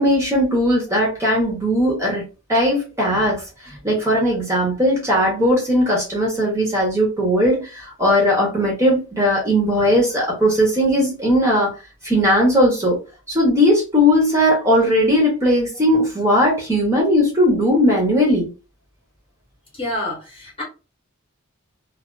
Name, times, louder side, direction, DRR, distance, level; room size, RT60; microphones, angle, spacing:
voice 1, 0.0-2.2 2.5-3.4 3.8-11.7 12.0-13.0 13.3-18.5, equal, 15° right, 0.7 m, -18 dB
voice 2, 19.8-20.6, left 1 dB, 25° left, 0.9 m, -28 dB
2.3 x 2.3 x 2.3 m
head